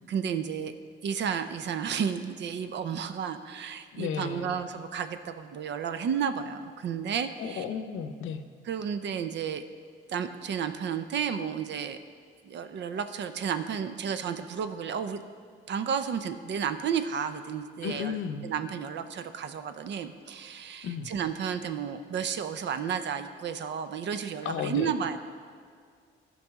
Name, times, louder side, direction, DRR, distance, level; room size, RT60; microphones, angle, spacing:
voice 1, 0.1-0.7 1.0-7.6 8.7-9.6 10.1-12.0 12.4-15.2 15.7-18.2 18.4-25.2, right 7 dB, 65° right, 10 dB, 0.6 m, -32 dB
voice 2, 3.9-4.6 7.4-8.4 17.8-18.5 20.8-21.1 24.4-24.9, left 7 dB, 85° left, 9 dB, 0.7 m, -34 dB
14.5 x 5.5 x 3.6 m, 2.1 s
cardioid pair, 90°, 20 cm